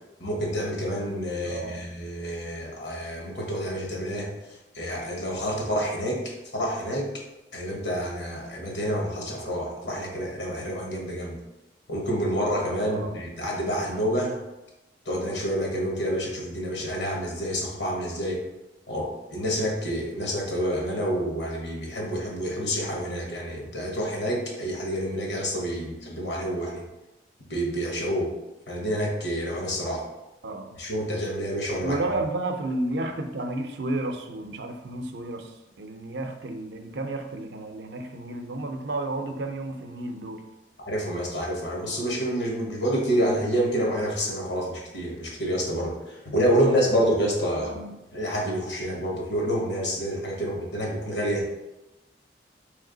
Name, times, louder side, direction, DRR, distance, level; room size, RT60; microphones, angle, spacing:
voice 1, 0.2-4.3 4.7-6.2 6.5-7.1 7.5-11.4 11.9-14.4 15.1-18.4 18.9-26.8 27.5-28.3 28.7-30.0 30.8-32.0 40.9-47.8 48.1-51.5, equal, 80° left, -1 dB, 1.1 m, -28 dB
voice 2, 1.4-1.8 12.8-13.1 30.4-30.7 31.8-40.4 47.6-47.9, right 2 dB, 70° right, 5 dB, 0.5 m, -32 dB
3.3 x 3.2 x 3.8 m, 0.97 s
head